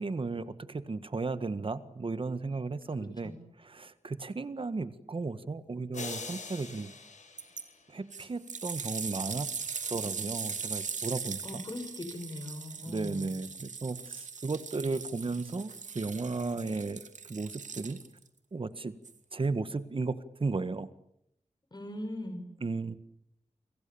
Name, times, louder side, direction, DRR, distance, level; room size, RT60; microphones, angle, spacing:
voice 1, 0.0-6.9 7.9-9.5 9.9-11.6 12.9-18.0 18.5-18.9 19.3-20.1 20.4-20.9 22.6-23.0, right 3 dB, 45° right, 12 dB, 1.7 m, -35 dB
sound 1, 5.9-8.3, left 4 dB, 75° left, 5.8 m, -43 dB
sound 2, 7.4-7.6 8.1-18.3 19.0-19.1, right 5 dB, 80° right, 2.6 m, -40 dB
voice 2, 11.4-13.3 21.7-22.4, left 1 dB, 35° left, 7 dB, 6.0 m, -40 dB
29.5 x 25.5 x 7.2 m, 0.76 s
wide cardioid pair, 115°, 12 cm